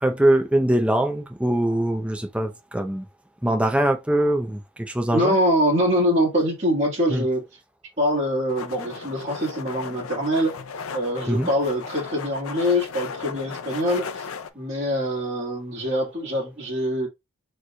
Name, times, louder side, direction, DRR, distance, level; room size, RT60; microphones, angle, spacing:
voice 1, 0.0-3.1 3.4-5.4 7.1-7.3 11.3-11.5, right 1 dB, 5° right, 0.5 m, -22 dB
voice 2, 5.1-7.4 8.0-10.5 10.9-14.3 14.5-17.1, equal, 30° right, 1.5 m, -24 dB
sound 1, 8.5-14.5, left 5 dB, 70° left, 0.5 m, -36 dB
6.4 x 3.1 x 2.2 m
head